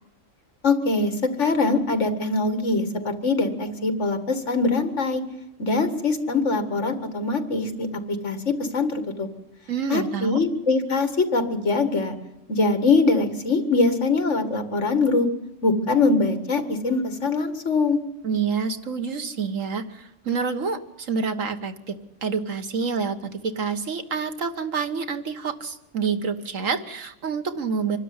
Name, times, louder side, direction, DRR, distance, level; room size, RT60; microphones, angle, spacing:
voice 1, 0.6-5.2 5.6-9.3 9.9-12.1 12.5-15.3 15.6-18.0, left 3 dB, 70° left, 9 dB, 2.2 m, -23 dB
voice 2, 9.7-10.4 18.2-22.0 22.2-28.0, right 5 dB, 90° right, 8 dB, 1.8 m, -28 dB
25.0 x 12.5 x 9.6 m, 0.91 s
omnidirectional pair, 1.3 m